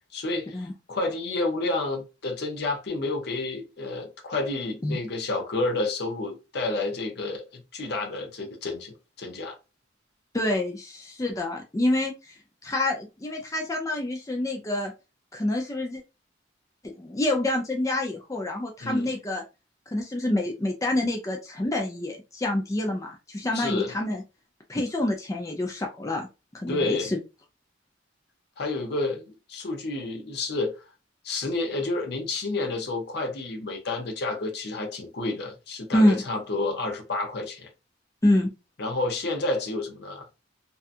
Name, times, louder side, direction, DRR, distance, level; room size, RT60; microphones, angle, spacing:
voice 1, 0.1-9.6 18.8-19.1 23.5-23.9 26.7-27.1 28.6-30.8 31.2-37.7 38.8-40.3, left 2 dB, 60° left, 0.7 m, -30 dB
voice 2, 10.3-12.4 12.6-14.9 15.3-16.0 16.8-19.4 19.9-24.2 24.7-26.3 26.5-27.2 35.9-36.2 38.2-38.5, left 1 dB, 15° left, 0.4 m, -27 dB
2.7 x 2.3 x 2.4 m
head